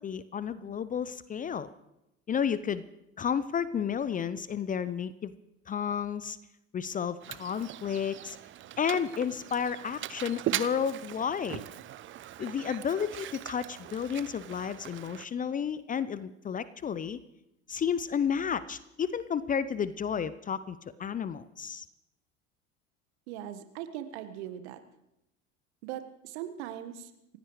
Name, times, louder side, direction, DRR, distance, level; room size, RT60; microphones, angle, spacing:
voice 1, 0.0-1.7 2.3-2.8 3.2-5.3 5.7-6.4 6.7-8.4 8.8-11.6 12.4-17.2 17.7-21.9, left 7 dB, 20° left, 16 dB, 0.7 m, -32 dB
Mechanisms, 7.2-15.3, right 12 dB, 30° right, 0.8 m, -40 dB
voice 2, 23.3-24.8 25.8-27.4, right 11 dB, 60° right, 9 dB, 1.6 m, -40 dB
28.0 x 15.5 x 3.3 m, 0.88 s
figure-of-eight pair, 70°, 37 cm